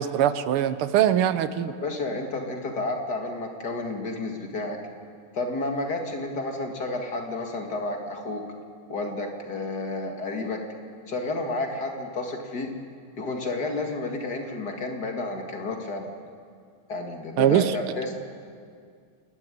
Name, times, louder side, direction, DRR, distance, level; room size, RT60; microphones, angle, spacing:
voice 1, 0.0-1.7 17.4-17.8, right 11 dB, 85° right, 13 dB, 1.7 m, -22 dB
voice 2, 1.8-4.8 5.3-8.4 8.9-10.6 11.1-12.7 13.2-16.1 16.9-18.1, left 2 dB, 50° left, 3 dB, 2.7 m, -31 dB
28.5 x 12.0 x 9.9 m, 2.2 s
omnidirectional pair, 2.4 m